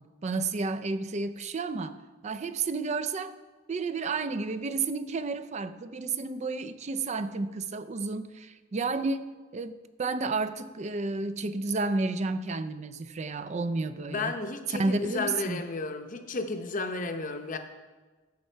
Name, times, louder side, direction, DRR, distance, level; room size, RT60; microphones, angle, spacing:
voice 1, 0.0-3.4 3.7-9.2 9.5-14.3 14.7-15.6, right 3 dB, 35° right, 12 dB, 0.4 m, -31 dB
voice 2, 14.0-17.6, left 3 dB, 40° left, 7 dB, 0.7 m, -33 dB
14.5 x 5.5 x 4.5 m, 1.3 s
head